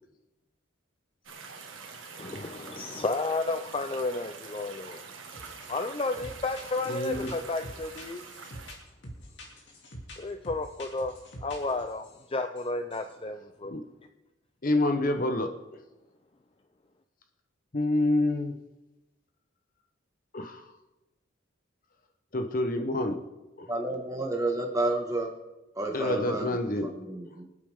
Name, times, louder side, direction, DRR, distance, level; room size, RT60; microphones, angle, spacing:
sound 1, 1.2-8.7, right 5 dB, 75° right, 1.8 m, -45 dB
voice 1, 2.2-5.0 5.7-8.2 10.2-11.1 11.4-13.7, left 3 dB, 25° left, 7 dB, 0.5 m, -32 dB
sound 2, 5.3-5.7 5.9-12.2 12.6-13.1, equal, 60° left, 3.0 m, -46 dB
voice 2, 6.9-7.3 13.7-13.8 14.6-15.5 17.7-18.5 20.3-20.6 22.3-23.2 23.6-23.7 25.9-26.9, left 1 dB, 40° left, 7 dB, 0.9 m, -27 dB
voice 3, 23.7-25.3 25.8-26.6 26.8-27.4, right 2 dB, 15° right, 2 dB, 1.6 m, -30 dB
25.0 x 8.4 x 3.6 m, 1.0 s
head